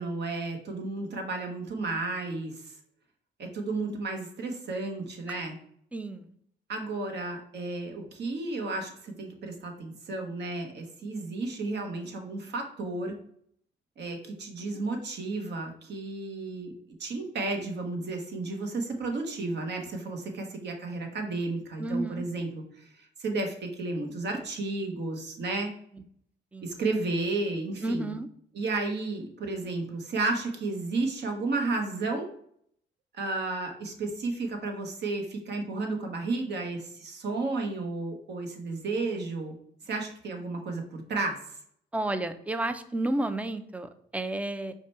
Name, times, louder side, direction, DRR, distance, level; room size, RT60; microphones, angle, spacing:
voice 1, 0.0-2.7 3.4-5.6 6.7-13.1 14.0-25.7 26.6-28.1 28.5-32.3 33.1-39.5 39.8-41.4, right 3 dB, 60° right, 4 dB, 1.0 m, -32 dB
voice 2, 5.9-6.3 21.8-22.3 26.5-26.7 27.8-28.3 41.9-44.7, right 2 dB, 5° right, 10 dB, 0.4 m, -31 dB
4.9 x 2.2 x 4.2 m, 0.67 s
cardioid pair, 90°, 20 cm